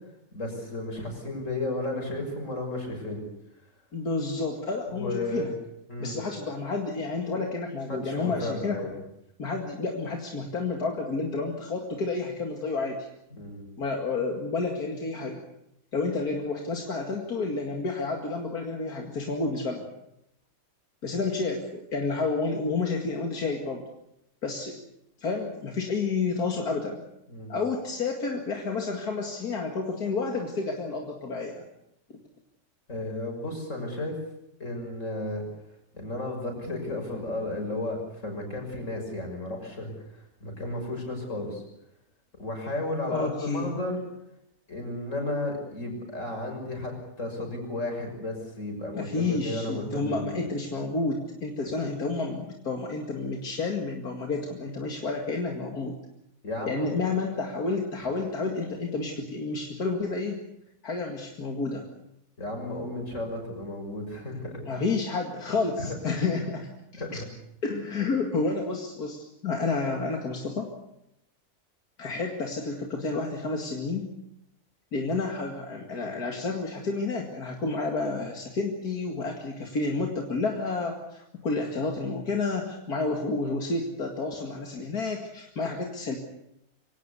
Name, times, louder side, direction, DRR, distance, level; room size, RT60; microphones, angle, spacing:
voice 1, 0.3-3.2 4.9-5.5 5.9-6.2 7.9-8.9 13.3-13.6 27.3-27.5 32.9-34.2 34.6-35.4 35.9-41.6 42.4-44.0 44.7-50.4 51.6-51.7 56.4-57.0 58.0-58.1 62.4-64.6 65.8-66.0 66.9-67.3, left 2 dB, 55° left, 3 dB, 6.7 m, -33 dB
voice 2, 3.9-5.5 6.0-8.9 9.4-13.1 13.8-15.4 15.9-19.8 21.0-23.8 24.4-24.8 25.2-27.0 27.5-31.6 32.1-32.2 43.1-43.8 48.9-55.9 56.7-60.4 60.8-61.9 64.7-67.2 67.6-70.7 72.0-74.1 74.9-86.2, left 3 dB, 85° left, 2 dB, 2.7 m, -30 dB
25.0 x 17.5 x 8.3 m, 0.82 s
omnidirectional pair, 1.6 m